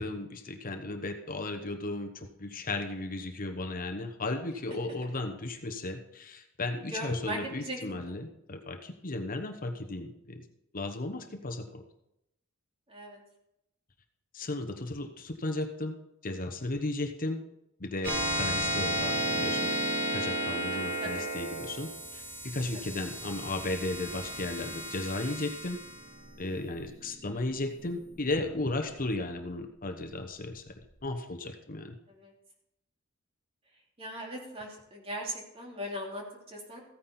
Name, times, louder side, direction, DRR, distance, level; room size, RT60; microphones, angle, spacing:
voice 1, 0.0-10.4 10.7-11.8 14.3-15.9 16.2-17.4 17.8-19.7 20.1-25.8 26.4-30.7 31.0-32.0, left 2 dB, 45° left, 5 dB, 1.1 m, -35 dB
voice 2, 6.9-8.1 12.9-13.2 21.0-21.3 22.7-22.8 32.2-32.3 34.0-36.8, equal, 30° right, 0 dB, 2.8 m, -39 dB
sound 1, 18.0-28.9, right 1 dB, 55° right, 3.4 m, -33 dB
15.0 x 9.4 x 4.3 m, 0.82 s
head